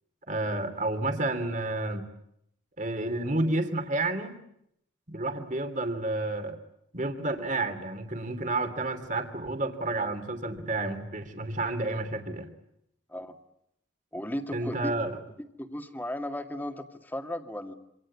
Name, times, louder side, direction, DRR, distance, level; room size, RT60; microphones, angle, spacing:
voice 1, 0.3-2.1 2.8-4.4 5.1-6.6 6.9-12.5 14.5-15.2, right 2 dB, 40° right, 7 dB, 2.8 m, -30 dB
voice 2, 14.1-14.9 15.6-17.7, left 1 dB, 10° left, 6 dB, 2.0 m, -35 dB
27.5 x 26.0 x 8.5 m, 0.76 s
head